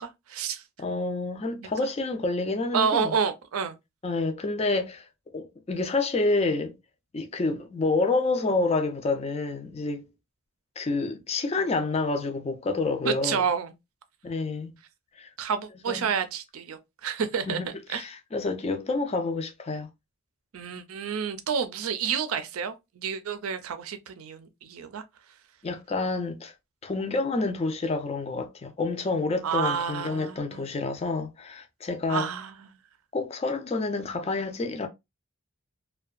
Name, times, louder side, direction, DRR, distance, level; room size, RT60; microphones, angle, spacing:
voice 1, 0.0-0.6 1.6-1.7 2.7-3.8 13.0-13.7 15.4-17.6 17.9-18.0 20.5-25.0 29.4-30.7 32.1-32.7, right 6 dB, 90° right, 0.4 m, -29 dB
voice 2, 0.8-3.1 4.0-5.1 5.3-6.7 7.1-10.1 10.8-13.4 14.2-14.8 15.2-15.3 15.9-16.1 17.5-19.9 25.6-26.5 26.8-32.3 33.1-34.9, left 3 dB, 30° left, 0.4 m, -28 dB
2.6 x 2.2 x 2.3 m
head